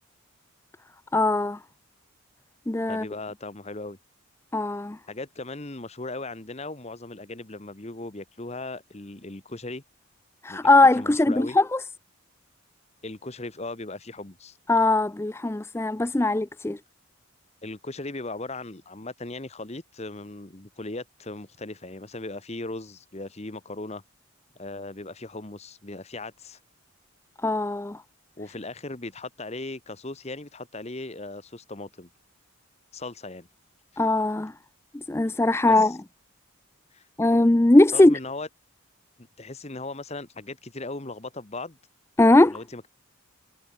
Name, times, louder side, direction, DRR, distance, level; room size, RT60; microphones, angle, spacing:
voice 1, 1.1-1.6 2.7-3.0 4.5-5.0 10.4-11.8 14.7-16.8 27.4-28.0 34.0-34.5 34.9-35.9 37.2-38.2 42.2-42.6, left 2 dB, 10° left, 0.4 m, -20 dB
voice 2, 2.9-4.0 5.1-9.8 10.5-10.6 10.9-11.6 13.0-14.6 17.6-24.0 24.5-26.6 28.4-32.1 32.9-33.5 35.7-36.0 36.9-37.1 37.9-38.5 39.2-41.8 42.5-42.9, left 2 dB, 30° left, 1.2 m, -38 dB
head